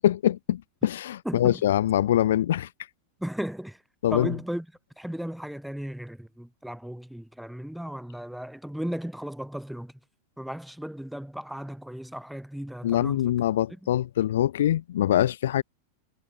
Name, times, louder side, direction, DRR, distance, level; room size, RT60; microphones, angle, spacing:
voice 1, 0.0-2.7 4.0-4.3 12.8-15.6, left 12 dB, 60° left, 0.6 m, -24 dB
voice 2, 1.2-1.6 3.2-3.8 4.1-4.7 5.0-9.9 10.4-13.3, equal, ahead, 7.6 m, -35 dB
figure-of-eight pair, 90°, 0 cm